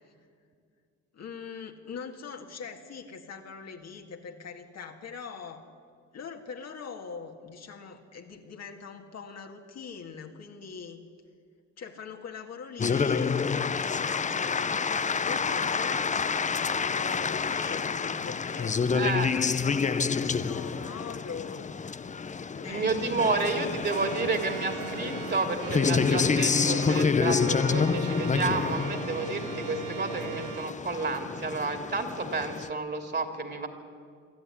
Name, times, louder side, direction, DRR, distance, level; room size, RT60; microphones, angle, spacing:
voice 1, 1.1-5.6 6.1-11.0 11.8-18.8 19.3-21.7 22.5-23.8, left 5 dB, 60° left, 2 dB, 2.0 m, -42 dB
sound 1, 12.8-32.7, left 5 dB, 25° left, 0.6 m, -28 dB
voice 2, 18.9-19.3 22.6-33.7, right 3 dB, 35° right, 6 dB, 2.9 m, -31 dB
Organ, 23.9-30.7, right 13 dB, 85° right, 0.7 m, -39 dB
23.5 x 13.5 x 9.8 m, 2.2 s
cardioid pair, 90°, 30 cm